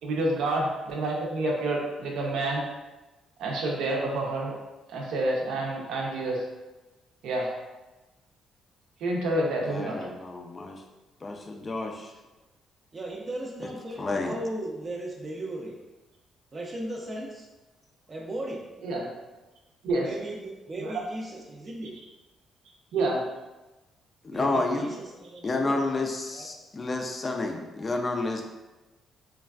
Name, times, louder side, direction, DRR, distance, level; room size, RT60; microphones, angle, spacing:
voice 1, 0.0-2.7 3.4-4.6 4.9-6.5 7.2-7.5 9.0-10.1 18.8-19.1 19.8-20.1 20.8-20.9 22.9-23.2, right 2 dB, 85° right, -1 dB, 0.6 m, -28 dB
voice 2, 9.7-10.8 11.2-12.1 14.0-14.4 24.2-24.9 25.4-28.4, left 2 dB, 30° left, 3 dB, 0.3 m, -30 dB
voice 3, 12.9-15.8 16.5-17.5 18.1-18.6 20.0-21.9 24.3-25.8 26.3-26.5, right 1 dB, 40° right, -2 dB, 0.4 m, -36 dB
3.2 x 2.3 x 2.3 m, 1.1 s
cardioid pair, 90°, 0 cm